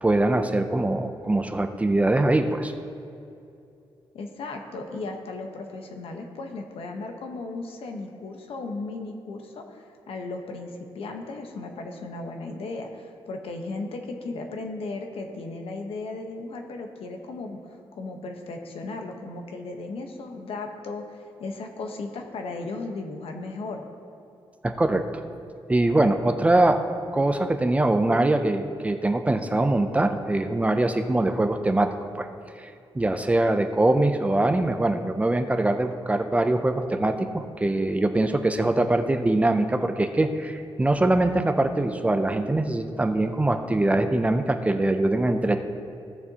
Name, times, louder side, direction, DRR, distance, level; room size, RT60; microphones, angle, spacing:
voice 1, 0.0-2.7 24.6-25.0 25.7-26.8 27.1-32.3 32.6-45.6, right 2 dB, 15° right, 7 dB, 0.4 m, -23 dB
voice 2, 4.1-23.9, left 3 dB, 90° left, 3 dB, 1.1 m, -36 dB
16.0 x 6.8 x 2.9 m, 2.6 s
wide cardioid pair, 155°, 9 cm